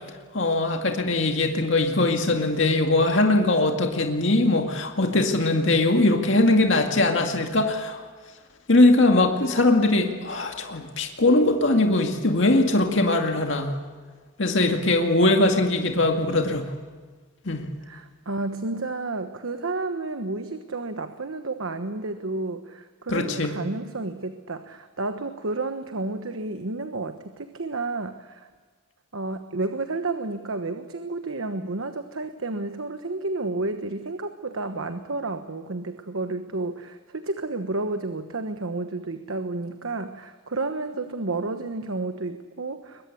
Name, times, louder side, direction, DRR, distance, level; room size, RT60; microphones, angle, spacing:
voice 1, 0.3-8.0 8.7-13.8 14.4-16.7 17.5-17.7 23.1-23.5, left 2 dB, 60° left, 3 dB, 2.2 m, -21 dB
voice 2, 17.8-28.5 29.1-43.1, right 3 dB, 75° right, 8 dB, 1.2 m, -31 dB
22.0 x 21.5 x 8.5 m, 1.4 s
head